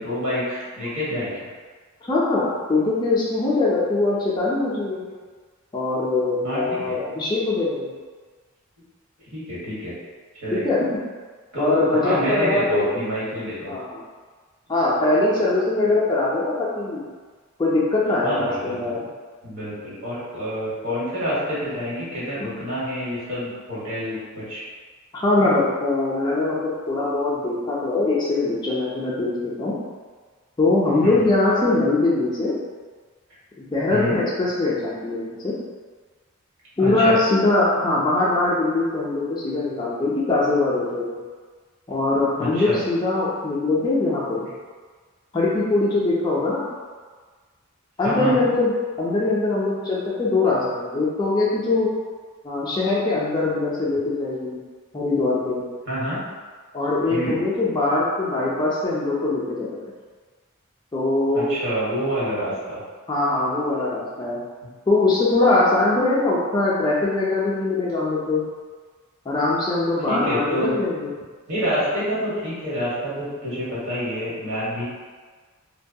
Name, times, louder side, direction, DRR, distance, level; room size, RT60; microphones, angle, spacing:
voice 1, 0.0-1.5 6.4-6.9 9.3-10.0 10.4-10.6 11.5-13.7 18.2-18.9 19.4-24.6 31.0-31.3 33.9-34.2 36.8-37.2 42.4-42.8 48.0-48.5 55.9-56.2 57.1-57.4 61.3-62.8 70.1-70.7 71.5-74.8, equal, 60° right, -9 dB, 1.2 m, -27 dB
voice 2, 2.1-5.0 5.7-7.9 10.5-10.9 11.6-12.9 13.7-14.0 14.7-17.0 17.6-19.0 22.4-22.5 25.1-29.7 30.6-32.6 33.6-35.5 36.8-41.1 41.9-44.5 45.3-46.7 48.0-51.9 52.4-54.6 54.9-55.6 56.7-59.9 60.9-61.6 63.1-64.4 64.9-68.4 69.3-71.1, left 2 dB, 20° left, -6 dB, 0.4 m, -22 dB
2.6 x 2.2 x 2.6 m, 1.5 s
head